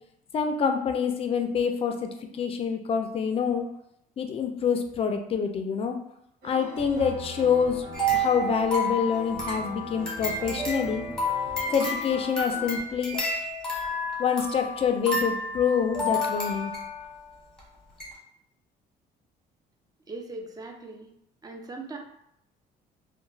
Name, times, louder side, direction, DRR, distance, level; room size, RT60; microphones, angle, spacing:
voice 1, 0.3-3.7 4.2-6.0 6.4-7.8 8.1-11.1 11.7-13.2 14.2-16.7, left 6 dB, 35° left, 5 dB, 0.4 m, -26 dB
sound 1, 6.4-12.8, left 1 dB, 65° right, 0.9 m, -40 dB
sound 2, 7.9-17.1 17.6-17.7 18.0-18.1, left 1 dB, 5° left, 0.9 m, -30 dB
voice 2, 20.1-21.1 21.4-22.0, right 2 dB, 20° right, 3 dB, 0.5 m, -39 dB
2.9 x 2.1 x 2.6 m, 0.76 s
cardioid pair, 110°, 17 cm